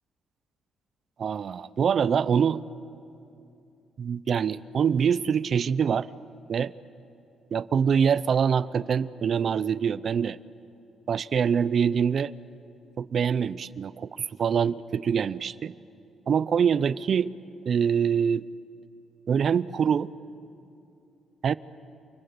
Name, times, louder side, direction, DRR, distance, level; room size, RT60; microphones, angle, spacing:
voice 1, 1.2-2.6 4.0-6.1 6.5-6.7 7.5-10.4 11.1-12.3 13.0-15.7 16.3-17.3 17.7-18.4 19.3-20.1 21.4-21.5, right 7 dB, 55° right, 18 dB, 0.6 m, -24 dB
29.0 x 20.5 x 8.1 m, 2.7 s
cardioid pair, 90°, 0 cm